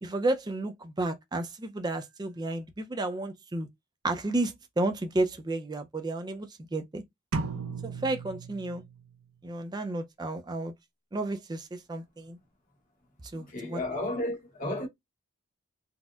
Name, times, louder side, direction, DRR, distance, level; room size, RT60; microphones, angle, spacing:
voice 1, 0.0-3.7 4.0-7.0 7.8-8.8 9.4-10.7 11.1-12.4 13.3-13.8 14.7-14.8, right 2 dB, 20° right, 0.4 m, -32 dB
sound 1, 7.3-9.2, right 4 dB, 90° right, 0.6 m, -35 dB
voice 2, 13.3-14.9, left 1 dB, 40° left, 0.9 m, -33 dB
4.2 x 2.1 x 2.3 m
head